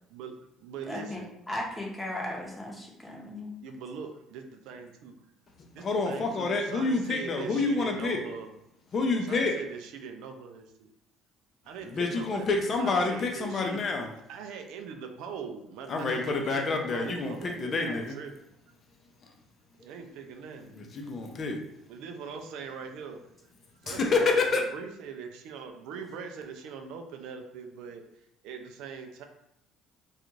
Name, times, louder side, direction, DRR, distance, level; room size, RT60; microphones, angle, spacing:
voice 1, 0.1-1.3 3.1-3.2 3.6-5.3 5.8-8.5 9.3-10.9 11.6-13.8 14.3-18.5 19.7-20.7 21.9-23.2 23.8-28.0 28.4-29.2, right 6 dB, 80° right, 5 dB, 0.4 m, -42 dB
voice 2, 0.8-3.5 19.8-19.9, left 1 dB, 15° left, -2 dB, 0.9 m, -37 dB
voice 3, 5.8-8.2 8.9-9.5 11.8-14.1 15.9-18.2 19.2-19.3 20.7-21.6 23.8-24.6, left 3 dB, 45° left, 2 dB, 0.6 m, -28 dB
2.4 x 2.3 x 3.0 m, 0.80 s
supercardioid pair, 70°, 0 cm